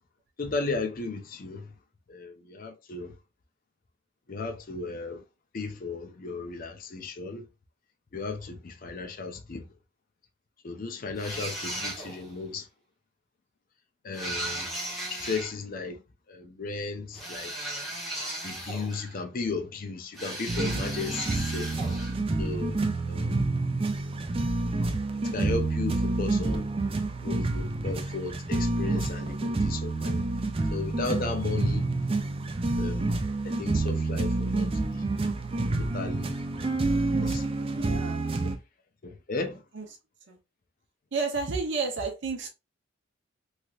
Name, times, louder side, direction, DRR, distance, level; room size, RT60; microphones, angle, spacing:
voice 1, 0.4-1.7 2.1-3.2 4.3-5.2 5.5-7.5 8.1-9.7 10.6-12.7 14.0-14.7 15.0-16.0 16.3-17.5 18.4-21.7 22.4-23.5 25.2-26.7 27.2-30.2 30.7-31.9 32.8-33.2 33.4-35.1 35.8-36.4 37.2-37.5 39.0-39.6, left 4 dB, 45° left, 0.5 m, -35 dB
sound 1, 11.2-12.3 14.1-15.5 17.1-19.2 20.1-22.2, right 1 dB, ahead, 0.9 m, -36 dB
sound 2, 20.5-38.5, right 2 dB, 30° right, 0.4 m, -28 dB
voice 2, 37.7-38.2 39.7-39.8 40.3-40.4 41.1-42.5, right 4 dB, 60° right, 0.7 m, -31 dB
3.1 x 2.8 x 2.3 m
head